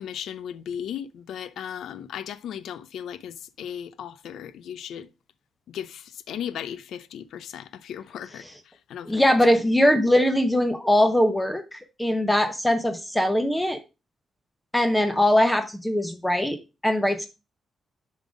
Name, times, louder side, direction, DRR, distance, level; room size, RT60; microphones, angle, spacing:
voice 1, 0.0-5.1 5.7-8.5 8.9-9.4 9.6-9.7, left 9 dB, 85° left, 0.5 m, -36 dB
voice 2, 9.1-13.8 14.7-16.6 16.8-17.3, left 1 dB, 5° left, 0.7 m, -21 dB
7.1 x 3.9 x 5.0 m
wide cardioid pair, 155°, 0 cm